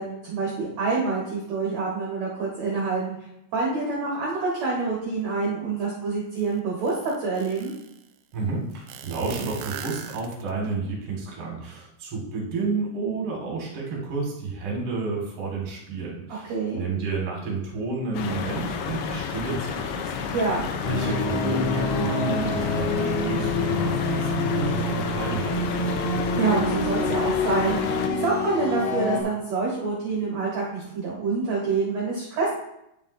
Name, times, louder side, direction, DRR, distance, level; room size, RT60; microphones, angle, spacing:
voice 1, 0.0-3.1 3.5-6.9 7.2-7.7 16.5-16.8 20.3-20.7 26.4-32.5, right 4 dB, 70° right, -4 dB, 1.7 m, -27 dB
sound 1, 6.4-6.5 6.9-8.0 8.9-10.7, right 9 dB, 90° right, 2.8 m, -38 dB
voice 2, 8.3-20.3 20.8-26.0, right 4 dB, 50° right, -2 dB, 1.7 m, -31 dB
sound 2, 18.1-28.1, left 7 dB, 85° left, 2.6 m, -31 dB
sound 3, 20.8-29.2, left 2 dB, 65° left, 2.4 m, -26 dB
9.5 x 7.2 x 2.6 m, 0.81 s
omnidirectional pair, 5.1 m